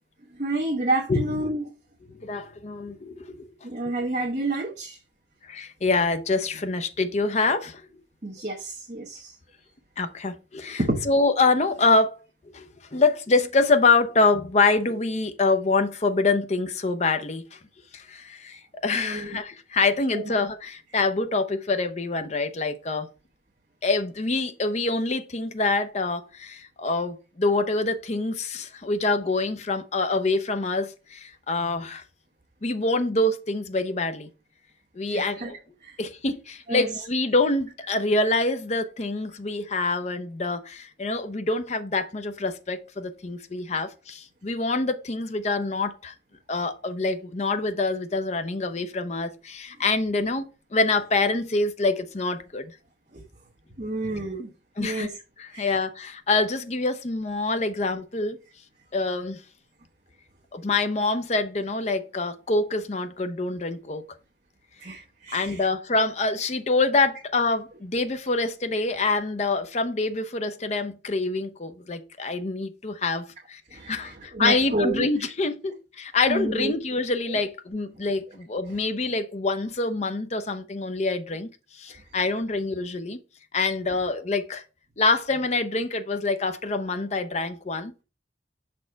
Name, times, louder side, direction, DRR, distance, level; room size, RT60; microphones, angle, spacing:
voice 1, 0.4-1.6 3.6-5.0 8.2-9.3 10.8-11.0 18.9-19.4 20.1-20.3 35.1-35.5 35.8-36.0 36.7-36.9 53.1-53.2 53.8-54.5 54.8-55.2 55.5-55.7 64.8-65.7 73.7-75.0 76.3-76.7 77.3-77.4, right 2 dB, 40° right, 1.1 m, -29 dB
voice 2, 2.2-3.5 5.4-7.8 10.0-12.2 12.5-12.7 12.9-17.6 17.9-23.1 23.8-32.0 32.6-34.3 35.0-35.6 36.0-46.1 46.5-52.7 54.8-55.1 55.4-58.4 58.9-59.4 60.5-64.1 65.3-83.2 83.5-84.6 85.0-87.9, left 3 dB, 35° left, 0.6 m, -26 dB
6.3 x 4.3 x 4.5 m
head